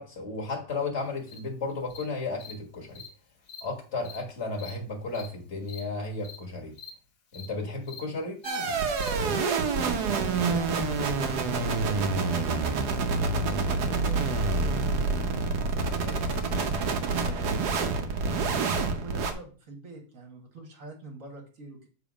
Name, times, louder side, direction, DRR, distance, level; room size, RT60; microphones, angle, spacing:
voice 1, 0.0-3.0 3.6-6.7 7.3-8.4, left 3 dB, 45° left, 1.8 m, -34 dB
Cricket, 1.3-1.4 1.9-2.0 2.4-2.5 3.0-3.1 3.4-3.6 4.0-4.2 4.6-4.7 5.1-5.3 5.6-5.8 6.2-6.4 6.7-6.9 7.3-7.5 7.8-8.0 8.4-8.6 9.0-9.1, left 6 dB, 75° left, 1.7 m, -44 dB
sound 1, 8.4-19.3, right 4 dB, 75° right, 1.4 m, -27 dB
voice 2, 10.1-12.8 13.4-16.6 17.0-21.9, right 2 dB, 55° right, 1.9 m, -45 dB
7.0 x 4.0 x 5.0 m
omnidirectional pair, 1.7 m